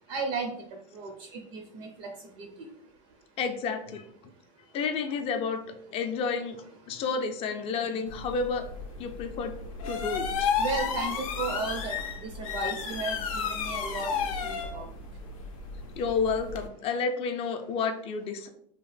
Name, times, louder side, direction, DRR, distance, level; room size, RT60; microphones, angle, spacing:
voice 1, 0.1-0.5 0.9-2.1 2.4-2.5 10.6-12.0 12.2-14.1 14.4-14.9, right 3 dB, 45° right, 4 dB, 0.5 m, -34 dB
voice 2, 3.4-4.0 4.7-5.6 5.9-8.6 9.0-9.6 9.9-10.5 13.4-13.5 16.0-18.5, left 5 dB, 35° left, 6 dB, 0.4 m, -30 dB
sound 1, 8.1-16.7, left 6 dB, 85° left, 0.5 m, -33 dB
2.9 x 2.1 x 3.1 m, 0.66 s
supercardioid pair, 130°, 17 cm